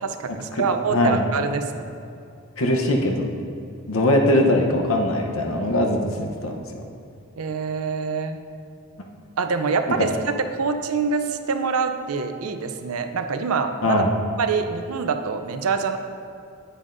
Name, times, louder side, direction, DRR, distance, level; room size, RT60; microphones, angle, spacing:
voice 1, 0.0-1.8 7.4-8.4 9.4-14.0 14.4-16.0, right 5 dB, 85° right, 7 dB, 0.6 m, -25 dB
voice 2, 0.9-1.2 2.6-3.3 3.9-6.8 10.0-10.1 13.8-14.1, left 1 dB, 75° left, 2 dB, 0.9 m, -21 dB
9.8 x 9.1 x 2.6 m, 2.4 s
head